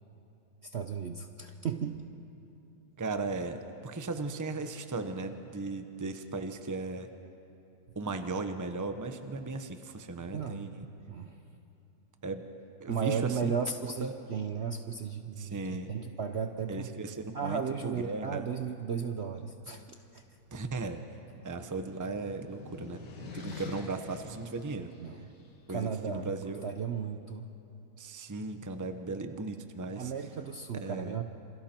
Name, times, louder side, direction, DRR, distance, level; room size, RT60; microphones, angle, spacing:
voice 1, 0.6-2.0 10.3-10.7 11.1-11.4 12.9-16.9 17.3-19.8 20.1-20.2 25.0-25.2 25.7-27.4 30.0-31.2, right 6 dB, 50° right, 6 dB, 0.9 m, -35 dB
voice 2, 3.0-7.1 7.9-10.9 12.2-12.4 12.8-13.5 14.0-14.1 15.4-15.9 16.7-18.5 20.5-21.0 21.4-24.9 25.7-26.6 28.0-30.1 30.8-31.2, right 3 dB, 15° right, 7 dB, 0.8 m, -37 dB
sound 1, 20.4-25.5, left 5 dB, 85° left, 2.5 m, -48 dB
28.0 x 27.5 x 4.5 m, 2.8 s
omnidirectional pair, 1.8 m